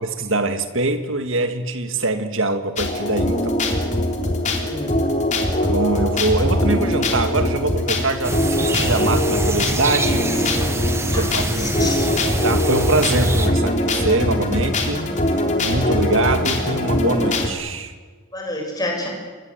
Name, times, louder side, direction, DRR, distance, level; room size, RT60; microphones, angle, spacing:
voice 1, 0.0-3.6 5.6-10.3 11.1-12.0 12.4-17.9, right 2 dB, 60° right, 8 dB, 2.2 m, -23 dB
sound 1, 2.8-17.5, left 1 dB, 35° left, 3.5 m, -21 dB
voice 2, 4.4-5.1 10.4-10.5 11.1-11.3 11.6-12.1 18.3-19.1, left 1 dB, 20° left, 1 dB, 6.9 m, -29 dB
sound 2, 8.2-13.5, right 2 dB, 10° right, 1.7 m, -26 dB
28.0 x 22.5 x 8.2 m, 1.4 s
head